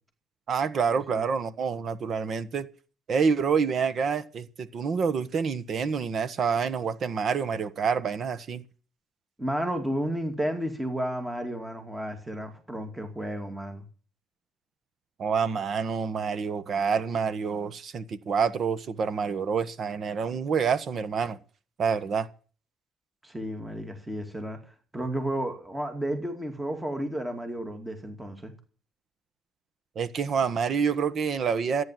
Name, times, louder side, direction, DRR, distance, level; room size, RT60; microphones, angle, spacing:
voice 1, 0.5-2.7 3.1-8.6 15.2-21.4 21.8-22.3 29.9-31.8, right 6 dB, 45° right, 1.3 m, -27 dB
voice 2, 9.4-13.8 23.2-24.6 24.9-28.5, right 1 dB, 5° right, 2.5 m, -32 dB
14.5 x 9.7 x 7.6 m
cardioid pair, 140°, 0 cm